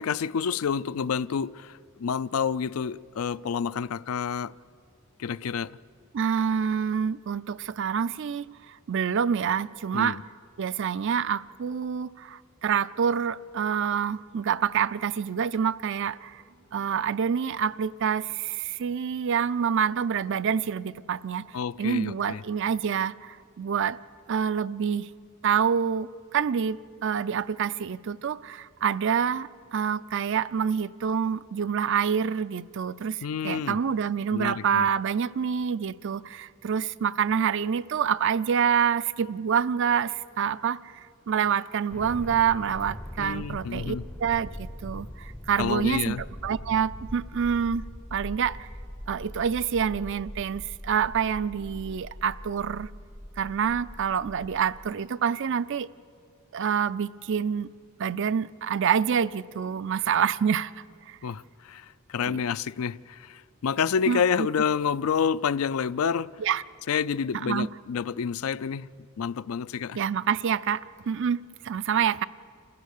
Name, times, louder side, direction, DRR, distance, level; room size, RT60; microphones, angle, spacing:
voice 1, 0.0-4.5 5.2-5.7 9.9-10.2 21.5-22.4 33.2-33.8 34.3-34.9 43.2-44.0 45.6-46.2 61.2-66.3 66.9-68.9 69.2-70.0, left 6 dB, 75° left, 0.4 m, -29 dB
voice 2, 6.1-10.2 10.6-16.4 16.7-21.4 21.8-24.0 24.3-25.1 25.4-46.2 46.4-47.9 48.1-48.7 49.1-52.9 53.4-55.9 56.5-57.7 58.0-60.7 61.1-61.2 62.3-62.4 64.1-64.5 66.4-66.6 67.3-67.7 69.9-72.2, right 7 dB, 60° right, 0.4 m, -27 dB
sound 1, 41.9-54.9, equal, 5° left, 0.5 m, -41 dB
28.0 x 15.5 x 6.6 m
head